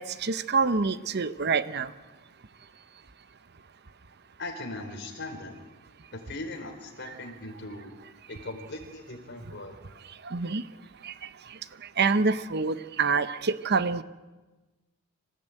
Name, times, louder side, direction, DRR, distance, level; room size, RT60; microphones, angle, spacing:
voice 1, 0.0-1.9 10.2-10.6 11.0-11.1 12.0-14.0, right 4 dB, 55° right, 13 dB, 0.8 m, -26 dB
voice 2, 4.4-5.6 6.1-7.9 8.3-9.8, left 2 dB, 55° left, 3 dB, 4.4 m, -39 dB
26.0 x 15.5 x 9.1 m, 1.2 s
head